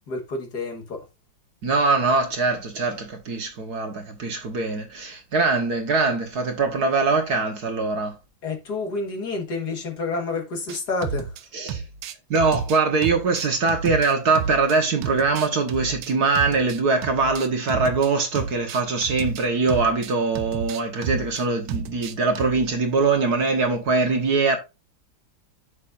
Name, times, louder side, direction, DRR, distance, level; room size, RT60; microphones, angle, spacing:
voice 1, 0.1-1.0 8.4-11.3, left 3 dB, 50° left, 2.1 m, -29 dB
voice 2, 1.6-8.2 11.5-11.8 12.3-24.6, right 4 dB, 50° right, 1.7 m, -22 dB
sound 1, 10.7-11.4 11.7-14.8 15.0-18.1 18.4-22.7, right 6 dB, 75° right, 1.6 m, -31 dB
8.7 x 6.4 x 2.5 m
omnidirectional pair, 2.3 m